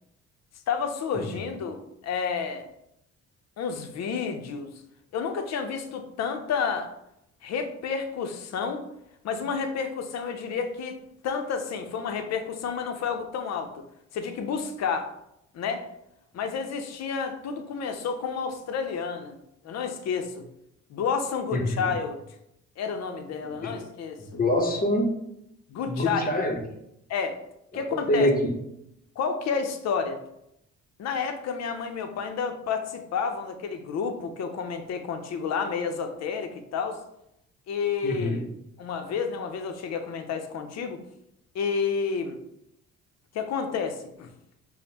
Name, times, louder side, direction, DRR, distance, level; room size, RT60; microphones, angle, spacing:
voice 1, 0.7-2.6 3.6-4.7 5.1-6.9 7.4-8.8 9.2-11.0 11.2-13.7 14.1-15.1 15.5-15.8 16.3-19.4 19.6-20.4 20.9-22.2 22.8-24.4 25.7-26.2 27.1-27.4 27.7-28.3 29.2-30.2 31.0-37.0 37.7-38.4 38.8-41.0 41.5-42.4 43.3-44.3, left 6 dB, 60° left, 6 dB, 0.6 m, -30 dB
voice 2, 21.5-22.0 23.6-23.8 24.2-25.2 25.9-26.6 27.7-28.6 38.0-38.5, left 1 dB, 30° left, 1 dB, 0.7 m, -26 dB
5.1 x 2.1 x 2.8 m, 0.81 s
cardioid pair, 90°, 30 cm